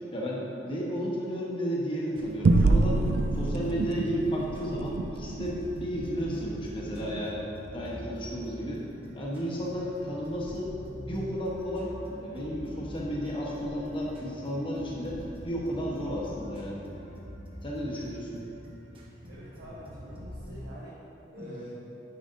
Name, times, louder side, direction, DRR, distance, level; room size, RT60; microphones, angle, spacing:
voice 1, 0.1-3.0 3.3-7.4 7.7-8.8 9.1-10.7 11.1-11.9 12.2-15.2 15.4-16.8 17.6-18.4 21.4-21.6, equal, 30° left, -4 dB, 1.1 m, -33 dB
sound 1, 2.1-20.7, equal, 30° right, 1.2 m, -45 dB
sound 2, 2.4-7.3, right 3 dB, 60° right, 0.3 m, -27 dB
voice 2, 19.3-21.0 21.3-21.7, equal, 80° right, -6 dB, 0.9 m, -45 dB
9.7 x 5.1 x 2.7 m, 3.0 s
head